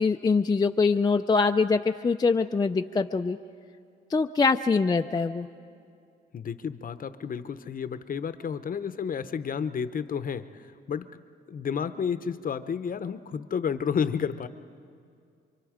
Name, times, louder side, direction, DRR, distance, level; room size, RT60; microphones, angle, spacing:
voice 1, 0.0-3.4 4.1-5.5, left 4 dB, 20° left, 5 dB, 0.5 m, -23 dB
voice 2, 6.3-11.1 11.5-14.5, left 7 dB, 45° left, 12 dB, 0.9 m, -31 dB
26.5 x 24.0 x 5.1 m, 2.3 s
cardioid pair, 90°, 20 cm